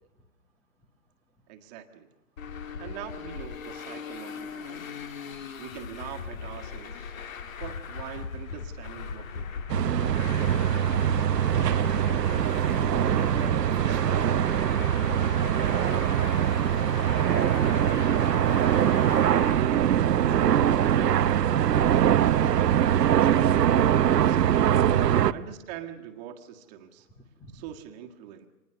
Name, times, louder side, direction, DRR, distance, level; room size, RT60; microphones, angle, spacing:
voice 1, 1.5-2.1 2.8-5.0 5.6-7.1 7.6-9.6 24.1-24.8 25.3-27.1 27.5-28.5, right 11 dB, 25° right, 4 dB, 1.6 m, -43 dB
Traffic noise roadway noise, 2.4-19.5, left 6 dB, 55° left, 1.9 m, -39 dB
sound 1, 9.7-25.3, right 10 dB, 80° right, 0.9 m, -23 dB
voice 2, 12.2-12.5 13.3-15.1 15.3-19.0 19.4-20.1 20.7-22.5 23.0-23.2 25.2-25.5 27.4-27.5, right 2 dB, 5° left, 2 dB, 0.8 m, -46 dB
25.5 x 20.0 x 6.8 m, 1.1 s
hypercardioid pair, 155°, 47 cm